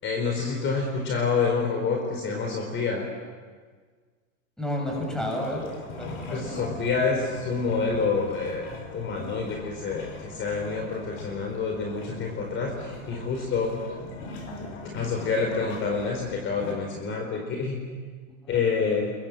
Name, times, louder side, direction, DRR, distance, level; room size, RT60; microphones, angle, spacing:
voice 1, 0.0-3.1 6.3-13.8 14.9-17.8 18.5-19.1, left 4 dB, 30° left, 1 dB, 4.5 m, -27 dB
voice 2, 4.6-6.5 18.4-18.6, equal, ahead, 0 dB, 7.2 m, -31 dB
sound 1, 4.9-16.7, left 2 dB, 50° left, 5.8 m, -41 dB
30.0 x 22.5 x 7.5 m, 1.5 s
supercardioid pair, 135°, 41 cm